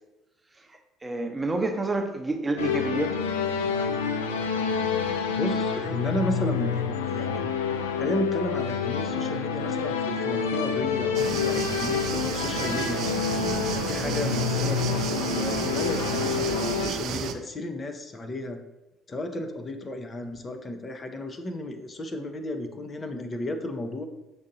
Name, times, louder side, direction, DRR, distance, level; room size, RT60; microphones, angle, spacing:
voice 1, 0.6-3.2 14.0-14.2, right 2 dB, 20° right, 5 dB, 0.6 m, -29 dB
sound 1, 2.6-16.9, left 6 dB, 90° left, 0.3 m, -28 dB
voice 2, 5.4-7.5 8.0-13.1 13.7-18.6 19.1-24.0, left 1 dB, 35° left, 6 dB, 0.6 m, -33 dB
sound 2, 11.1-17.3, right 8 dB, 60° right, 0.4 m, -32 dB
6.6 x 2.7 x 2.6 m, 0.98 s
hypercardioid pair, 60°, 0 cm